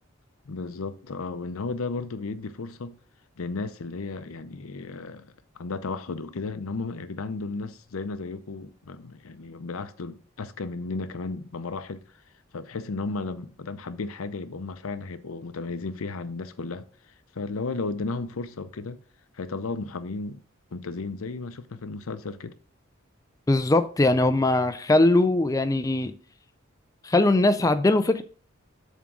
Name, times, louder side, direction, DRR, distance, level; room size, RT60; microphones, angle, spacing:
voice 1, 0.5-3.0 3.4-5.3 5.6-12.0 12.5-16.9 17.3-19.0 19.3-20.4 20.7-22.5, left 3 dB, 90° left, 0.7 m, -34 dB
voice 2, 23.5-26.2 27.0-28.2, left 2 dB, 15° left, 0.4 m, -21 dB
7.3 x 3.7 x 6.1 m
head